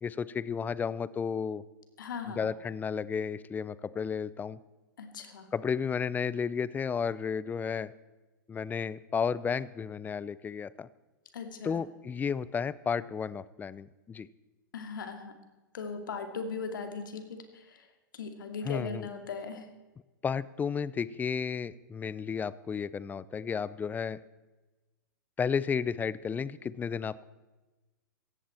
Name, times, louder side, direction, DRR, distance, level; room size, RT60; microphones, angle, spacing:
voice 1, 0.0-1.6 2.3-4.6 5.5-7.9 8.5-10.9 11.6-14.3 18.6-19.1 20.2-24.2 25.4-27.2, left 6 dB, 15° left, 19 dB, 0.6 m, -33 dB
voice 2, 2.0-2.5 5.0-5.5 11.3-11.8 14.7-15.4 15.7-17.9 18.1-19.7, left 5 dB, 75° left, 7 dB, 2.4 m, -39 dB
17.5 x 15.0 x 4.4 m, 1.1 s
hypercardioid pair, 110°, 11 cm